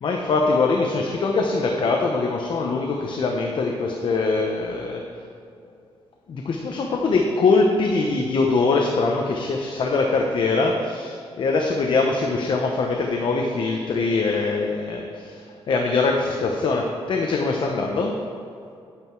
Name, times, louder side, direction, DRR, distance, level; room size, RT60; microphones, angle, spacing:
voice 1, 0.0-5.0 6.3-18.2, left 3 dB, 50° left, 1 dB, 0.9 m, -22 dB
9.5 x 8.7 x 4.7 m, 2.5 s
wide cardioid pair, 165°, 10 cm